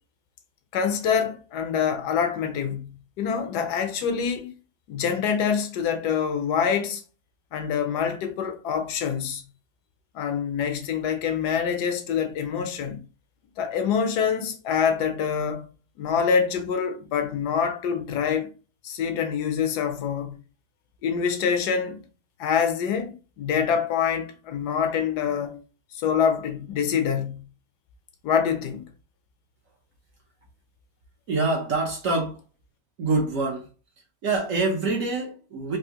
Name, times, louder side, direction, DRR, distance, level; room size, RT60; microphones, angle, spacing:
voice 1, 0.7-2.9 3.2-4.6 4.9-7.0 7.5-9.4 10.1-13.0 13.6-15.7 16.0-18.5 18.8-20.4 21.0-22.0 22.4-25.6 25.9-27.4 28.2-28.8, left 7 dB, 70° left, 1.2 m, -25 dB
voice 2, 31.3-32.4 33.0-33.7 34.2-35.8, right 3 dB, 60° right, 1.0 m, -25 dB
3.6 x 2.5 x 2.8 m
omnidirectional pair, 1.9 m